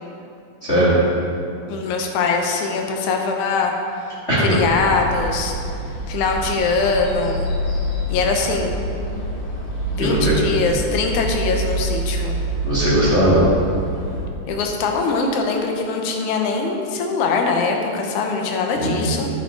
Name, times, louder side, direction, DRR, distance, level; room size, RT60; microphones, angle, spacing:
voice 1, 0.6-0.9 4.3-4.6 10.0-10.4 12.6-13.4 18.8-19.2, equal, 25° left, -11 dB, 2.3 m, -18 dB
voice 2, 1.7-3.7 4.4-5.5 6.1-7.5 8.1-8.8 9.9-12.4 14.5-19.3, left 4 dB, 75° left, 2 dB, 2.3 m, -22 dB
sound 1, 4.5-14.2, right 1 dB, 50° left, 2.5 m, -26 dB
11.0 x 7.0 x 4.7 m, 2.5 s
omnidirectional pair, 3.6 m